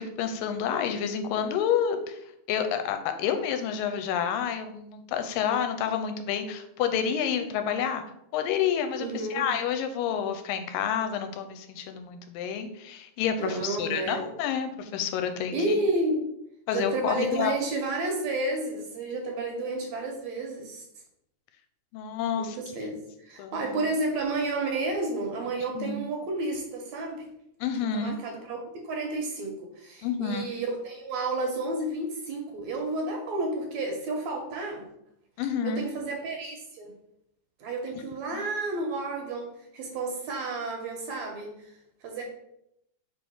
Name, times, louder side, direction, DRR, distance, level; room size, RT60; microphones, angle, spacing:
voice 1, 0.0-2.2 2.5-8.0 8.3-9.1 9.3-15.6 16.7-17.5 21.9-22.6 23.4-23.7 25.8-26.0 27.6-28.2 30.0-30.4 35.4-35.8 38.3-38.4, left 8 dB, 85° left, 7 dB, 2.2 m, -29 dB
voice 2, 9.0-9.5 13.4-14.3 15.5-16.3 16.7-20.8 22.4-27.3 27.9-34.9 35.6-37.0 37.6-42.2, right 2 dB, 70° right, 1 dB, 1.8 m, -31 dB
5.1 x 3.4 x 5.4 m, 0.78 s
omnidirectional pair, 3.9 m